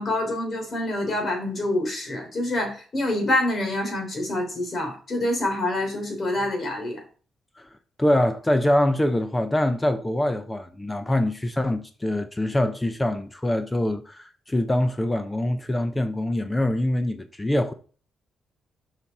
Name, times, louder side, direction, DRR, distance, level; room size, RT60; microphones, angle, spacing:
voice 1, 0.0-7.0, left 1 dB, 40° left, 3.3 m, -26 dB
voice 2, 8.0-17.7, left 1 dB, 10° left, 0.6 m, -24 dB
7.2 x 5.8 x 4.7 m
cardioid pair, 150°, 0 cm